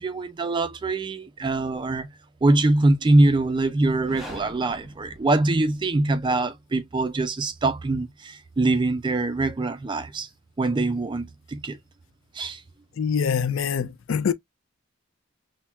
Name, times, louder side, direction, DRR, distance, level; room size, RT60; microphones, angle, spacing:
voice 1, 0.0-2.1 2.4-10.3 10.6-11.8 12.3-12.6, right 2 dB, 20° right, 0.3 m, -23 dB
sound 1, 3.9-6.0, equal, ahead, 1.1 m, -43 dB
voice 2, 12.9-14.3, left 7 dB, 65° left, 0.4 m, -24 dB
5.8 x 2.1 x 2.2 m
head